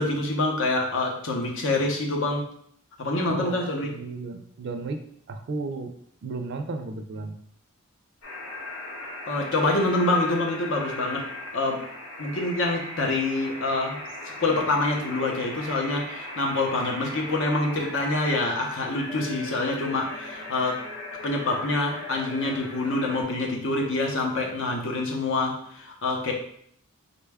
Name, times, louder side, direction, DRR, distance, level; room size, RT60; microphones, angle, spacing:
voice 1, 0.0-2.4 3.0-3.9 9.3-11.9 12.2-14.0 14.4-20.8 21.2-26.3, left 2 dB, 60° left, 1 dB, 0.7 m, -26 dB
voice 2, 3.3-5.0 5.3-5.9 6.2-7.3, right 3 dB, 50° right, 6 dB, 0.4 m, -34 dB
sound 1, 8.2-23.2, left 2 dB, 80° left, 1.0 m, -38 dB
3.9 x 2.2 x 3.4 m, 0.67 s
head